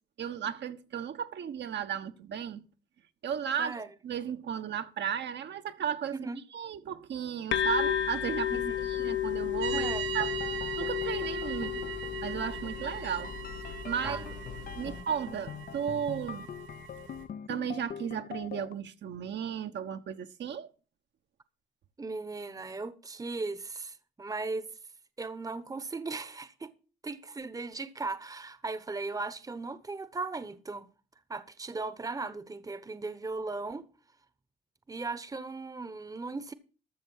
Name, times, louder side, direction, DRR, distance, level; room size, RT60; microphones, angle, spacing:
voice 1, 0.2-2.6 3.2-3.7 4.0-6.2 6.5-8.5 8.8-9.9 10.1-10.3 10.8-11.9 12.2-13.3 13.7-14.2 14.8-16.5 17.5-20.7, right 8 dB, 60° right, 1.2 m, -34 dB
sound 1, 7.5-15.0, left 10 dB, 65° left, 1.0 m, -33 dB
voice 2, 8.5-8.8 9.7-10.1 14.0-14.3 14.8-15.0 22.0-24.7 25.2-26.7 27.0-30.9 31.3-33.9 34.9-36.5, right 3 dB, 15° right, 1.0 m, -37 dB
sound 2, 9.6-17.2, right 9 dB, 80° right, 4.4 m, -40 dB
sound 3, 10.1-18.7, left 8 dB, 50° left, 0.6 m, -44 dB
13.5 x 6.6 x 6.4 m
cardioid pair, 90°, 20 cm